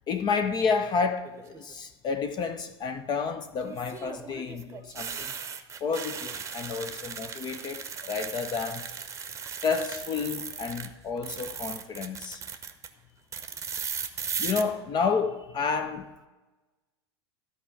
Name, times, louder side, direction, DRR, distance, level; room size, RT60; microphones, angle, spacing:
voice 1, 0.1-5.3 5.8-8.8 9.6-12.4 14.4-16.3, left 5 dB, 30° left, 0.6 m, -30 dB
sound 1, 1.2-1.7 3.6-10.9 11.2-12.9 13.3-14.6, right 6 dB, 20° right, 0.8 m, -37 dB
13.0 x 4.7 x 6.9 m
figure-of-eight pair, 80°, 14 cm